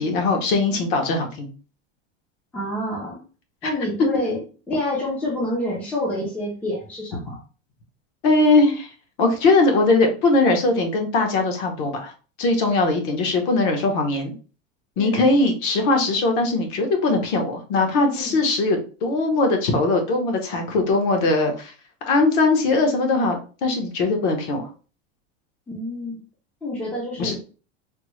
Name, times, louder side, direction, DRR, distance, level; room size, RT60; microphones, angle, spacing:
voice 1, 0.0-1.5 3.6-3.7 8.2-8.9 9.2-12.1 12.4-14.3 15.0-21.7 22.0-24.6 27.2-27.4, left 3 dB, 50° left, 4 dB, 0.9 m, -20 dB
voice 2, 2.5-3.2 3.6-4.4 4.7-7.4 15.0-15.2 18.1-18.4 25.7-26.2 26.6-27.4, left 1 dB, 5° left, -3 dB, 0.4 m, -27 dB
3.5 x 2.0 x 3.0 m, 0.36 s
supercardioid pair, 165°, 32 cm